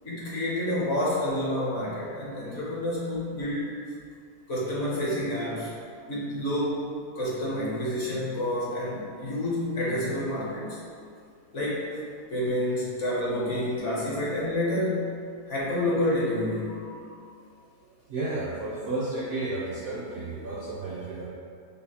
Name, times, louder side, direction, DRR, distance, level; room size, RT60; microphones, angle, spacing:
voice 1, 0.0-3.7 4.5-5.7 6.1-6.8 7.1-10.8 11.5-11.9 12.3-15.1 15.5-17.2, left 1 dB, 55° left, -6 dB, 1.1 m, -29 dB
voice 2, 18.1-21.2, right 2 dB, 65° right, -7 dB, 0.6 m, -32 dB
5.5 x 2.0 x 2.8 m, 2.2 s
omnidirectional pair, 1.6 m